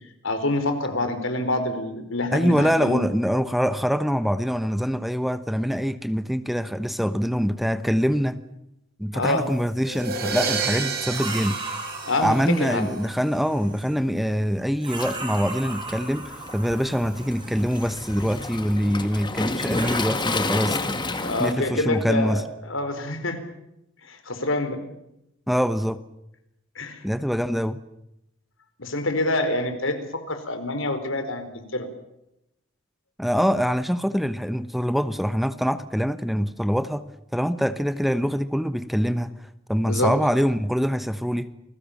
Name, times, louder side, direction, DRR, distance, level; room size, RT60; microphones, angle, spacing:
voice 1, 0.2-3.0 9.1-9.5 12.0-12.9 21.2-23.4 24.1-24.8 26.7-27.0 28.8-31.9 39.8-40.1, left 2 dB, 75° left, 8 dB, 4.6 m, -26 dB
voice 2, 2.3-8.4 9.0-11.6 12.2-16.2 16.5-22.4 25.5-26.0 27.0-27.8 33.2-37.0 37.3-39.3 39.7-41.5, equal, ahead, 12 dB, 1.0 m, -24 dB
sound 1, 9.3-9.9 11.1-14.0 14.8-18.7 19.5-19.9, right 3 dB, 25° right, 7.1 m, -37 dB
sound 2, 9.8-12.8, right 5 dB, 50° right, 6.3 m, -30 dB
Waves surf, 14.9-21.5, left 2 dB, 25° left, 2.1 m, -31 dB
28.5 x 20.5 x 7.3 m, 0.84 s
head